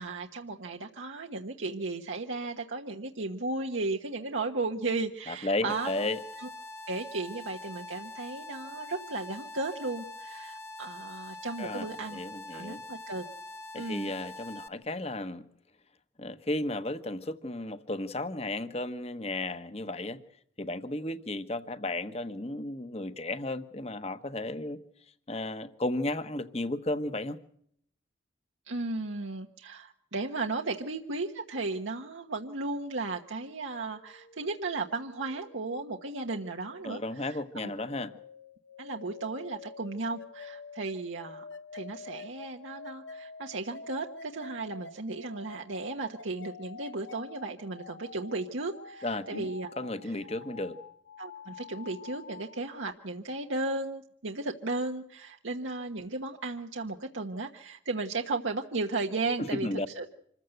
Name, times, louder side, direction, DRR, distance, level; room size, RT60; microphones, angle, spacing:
voice 1, 0.0-5.9 6.4-6.5 6.9-12.2 12.5-13.2 13.8-14.1 28.7-37.7 38.8-41.5 41.7-49.7 51.2-59.7 60.0-60.1, right 3 dB, 90° right, 3 dB, 1.3 m, -35 dB
voice 2, 5.3-6.2 11.6-12.8 13.7-15.4 16.2-20.2 20.6-24.8 25.3-27.4 36.8-38.1 49.0-49.5 49.8-50.8 59.5-59.9, left 2 dB, 35° left, 11 dB, 1.2 m, -34 dB
sound 1, 5.7-14.7, left 2 dB, 15° left, 1.1 m, -44 dB
sound 2, 33.8-52.9, left 4 dB, 75° left, 1.1 m, -48 dB
26.5 x 15.0 x 7.9 m, 0.69 s
head